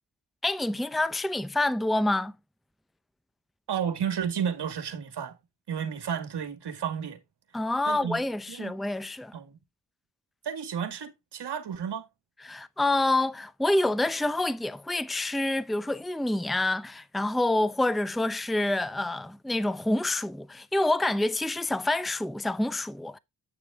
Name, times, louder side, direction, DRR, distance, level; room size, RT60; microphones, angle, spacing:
voice 1, 0.4-2.3 7.5-9.3 12.5-23.2, left 2 dB, ahead, 0.7 m, -27 dB
voice 2, 3.7-5.4 5.7-7.2 7.9-8.2 8.5-8.7 9.3-9.6 10.4-12.1, right 8 dB, 70° right, 2.2 m, -32 dB
11.0 x 6.8 x 3.7 m
cardioid pair, 55°, 42 cm